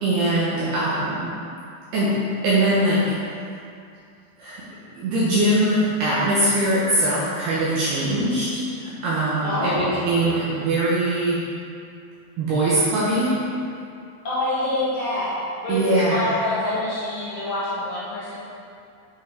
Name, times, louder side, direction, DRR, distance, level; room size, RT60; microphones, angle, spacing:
voice 1, 0.0-1.3 1.9-2.1 2.4-3.0 4.4-4.6 4.9-11.4 12.4-13.4 15.7-16.2, right 1 dB, 70° right, -9 dB, 2.8 m, -22 dB
voice 2, 9.4-10.1 14.2-15.3 15.6-18.4, left 1 dB, 90° left, -11 dB, 1.3 m, -26 dB
8.3 x 5.6 x 4.7 m, 2.5 s
omnidirectional pair, 5.5 m